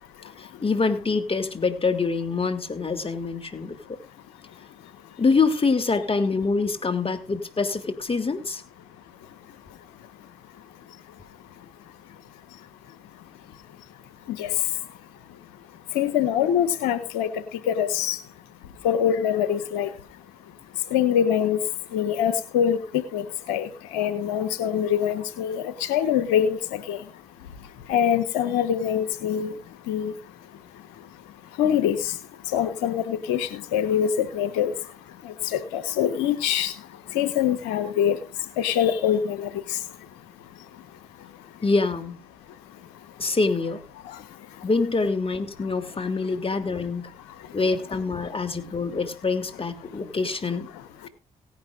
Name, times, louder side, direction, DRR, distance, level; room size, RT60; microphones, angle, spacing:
voice 1, 0.4-3.8 5.2-8.6 41.6-42.2 43.2-43.8 44.6-47.1 47.5-50.7, left 4 dB, 35° left, 8 dB, 2.9 m, -25 dB
voice 2, 15.9-17.3 17.7-18.2 18.8-19.9 20.9-21.6 21.9-22.8 23.1-27.0 27.9-29.5 29.9-30.1 31.6-32.0 32.5-34.7 35.5-36.7 37.1-38.2 38.6-39.5, left 9 dB, 85° left, 13 dB, 1.2 m, -24 dB
18.0 x 11.5 x 2.5 m, 0.31 s
hypercardioid pair, 40°, 16 cm